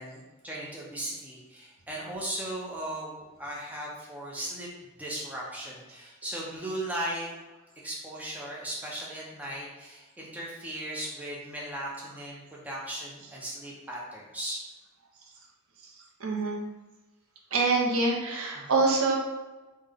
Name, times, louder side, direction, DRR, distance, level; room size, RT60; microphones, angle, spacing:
voice 1, 0.0-4.7 5.0-7.3 7.8-14.6 18.5-18.7, right 1 dB, 5° right, -4 dB, 0.5 m, -37 dB
voice 2, 16.2-16.6 17.5-19.2, right 3 dB, 80° right, 1 dB, 0.6 m, -25 dB
3.6 x 2.1 x 3.4 m, 1.1 s
head